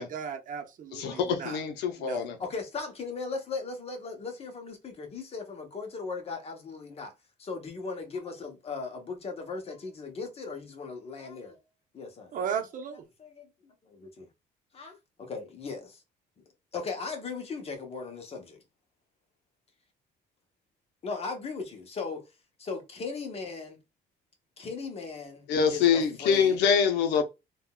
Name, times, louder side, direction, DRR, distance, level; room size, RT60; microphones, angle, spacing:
voice 1, 0.0-1.6 2.0-2.3 12.3-13.0, right 7 dB, 50° right, 0.7 m, -35 dB
voice 2, 0.9-2.4 25.5-27.2, left 7 dB, 85° left, 0.6 m, -25 dB
voice 3, 2.4-7.1 7.4-11.6 11.9-12.3 13.2-13.5 13.9-14.3 14.7-16.0 16.7-18.6 21.0-22.2 22.6-23.8 24.6-26.6, left 4 dB, 35° left, 0.8 m, -38 dB
3.6 x 2.2 x 2.3 m
cardioid pair, 110°, 17 cm